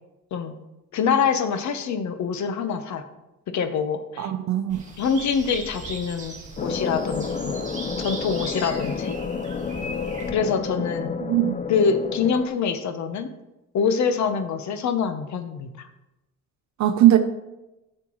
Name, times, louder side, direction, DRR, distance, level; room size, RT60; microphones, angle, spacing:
voice 1, 0.9-3.0 3.5-4.3 5.0-6.3 6.6-7.6 8.0-9.2 10.3-11.2 11.7-13.3 13.7-15.9, left 6 dB, 70° left, 9 dB, 0.9 m, -25 dB
voice 2, 4.2-4.8 11.2-11.6 16.8-17.2, right 13 dB, 70° right, 8 dB, 0.7 m, -19 dB
sound 1, 4.7-10.3, right 3 dB, 25° right, 1.6 m, -38 dB
sound 2, 6.6-12.5, left 5 dB, 25° left, 0.5 m, -30 dB
11.0 x 6.8 x 3.0 m, 0.96 s
cardioid pair, 90°, 30 cm